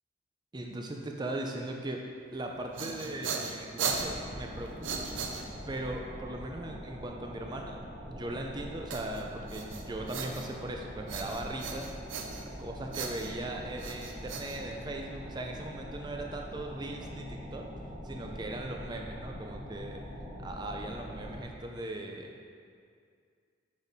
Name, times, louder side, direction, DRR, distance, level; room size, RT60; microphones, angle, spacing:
voice 1, 0.5-2.1 2.3-5.1 5.7-7.8 8.1-11.9 12.6-17.7 18.0-20.0 20.4-22.3, right 1 dB, 20° right, 2 dB, 0.4 m, -39 dB
sound 1, 2.5-5.9 8.9-10.7 11.1-12.6 12.9-15.2, right 5 dB, 80° right, 0.6 m, -38 dB
sound 2, 3.8-21.4, equal, 40° right, 1.2 m, -43 dB
6.3 x 5.3 x 4.1 m, 2.2 s
head